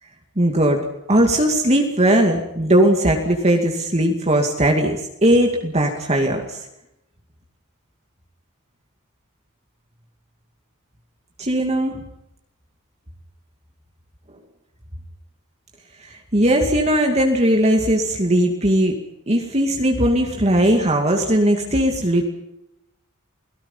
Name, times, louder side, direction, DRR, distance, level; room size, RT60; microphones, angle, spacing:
voice 1, 0.4-0.8 1.1-6.6 11.4-12.0 16.1-19.0 19.3-22.2, right 1 dB, 30° right, 2 dB, 2.4 m, -18 dB
29.0 x 18.5 x 5.7 m, 0.86 s
head